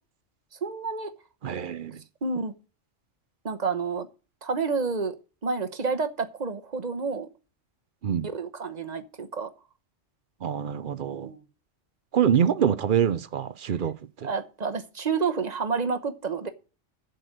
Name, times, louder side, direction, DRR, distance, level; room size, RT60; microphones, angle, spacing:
voice 1, 0.6-1.1 2.2-2.5 3.4-4.1 4.4-5.2 5.4-7.3 8.3-9.5 11.0-11.4 14.2-16.5, right 5 dB, 35° right, 1.0 m, -29 dB
voice 2, 1.4-2.0 8.0-8.3 10.4-11.3 12.1-14.3, right 8 dB, 55° right, 0.7 m, -25 dB
7.8 x 6.8 x 7.8 m
omnidirectional pair, 1.3 m